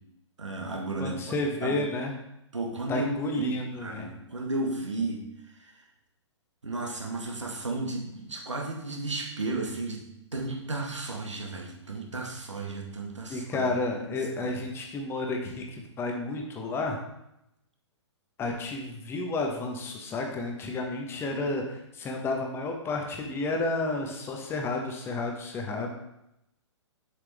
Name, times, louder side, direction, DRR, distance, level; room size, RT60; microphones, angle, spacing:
voice 1, 0.4-1.3 1.6-1.8 2.5-3.1 3.3-5.7 6.6-10.1 10.3-13.6 14.4-14.6 21.3-21.4, right 2 dB, 80° right, 2 dB, 1.5 m, -34 dB
voice 2, 1.0-2.1 2.9-4.1 13.3-17.0 18.4-25.9, left 2 dB, 15° left, 2 dB, 1.1 m, -31 dB
7.2 x 6.5 x 3.5 m, 0.84 s
figure-of-eight pair, 120°, 15 cm